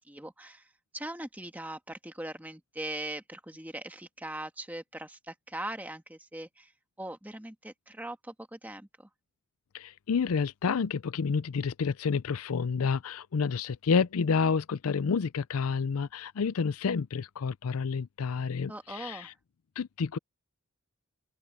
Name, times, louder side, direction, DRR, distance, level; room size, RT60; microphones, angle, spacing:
voice 1, 0.1-0.7 0.9-6.7 7.0-9.1 18.7-19.3, right 1 dB, 10° right, 1.5 m, -40 dB
voice 2, 9.7-19.3 19.8-20.2, left 5 dB, 85° left, 0.5 m, -29 dB
open air
head